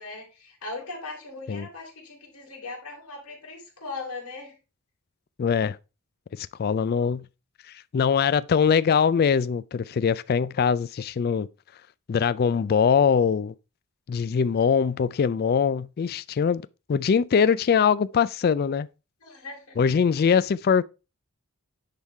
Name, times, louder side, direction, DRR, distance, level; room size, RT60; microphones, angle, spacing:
voice 1, 0.0-4.6 19.2-19.8, left 3 dB, 80° left, 3.5 m, -39 dB
voice 2, 5.4-5.8 6.3-7.2 7.9-11.5 12.1-13.5 14.1-16.6 16.9-18.9 19.8-20.8, left 6 dB, 45° left, 0.3 m, -22 dB
10.5 x 3.7 x 4.5 m
head